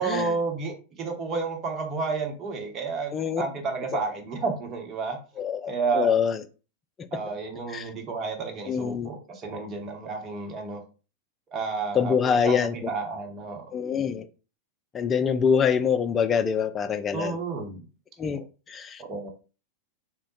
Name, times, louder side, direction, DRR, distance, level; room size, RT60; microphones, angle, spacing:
voice 1, 0.0-5.2 5.7-6.1 7.1-10.8 11.5-12.6 12.9-13.7 17.1-17.8 18.3-18.4 19.0-19.3, right 4 dB, 30° right, 1.0 m, -31 dB
voice 2, 3.1-3.4 3.9-4.0 5.4-6.4 7.7-7.9 8.7-9.1 11.9-12.9 13.7-14.2 14.9-17.4 18.2-18.4 18.7-19.0, left 7 dB, 20° left, 0.4 m, -25 dB
3.6 x 2.1 x 3.9 m
figure-of-eight pair, 90°, 0 cm